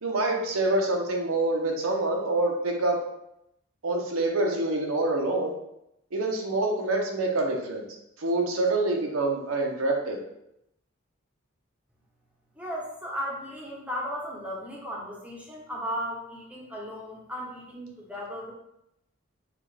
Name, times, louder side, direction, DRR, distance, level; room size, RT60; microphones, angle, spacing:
voice 1, 0.0-3.0 3.8-5.5 6.1-7.8 8.2-10.2, right 2 dB, 90° right, 0 dB, 0.8 m, -26 dB
voice 2, 12.5-18.5, equal, 5° right, -3 dB, 0.8 m, -36 dB
5.9 x 2.4 x 3.2 m, 0.81 s
head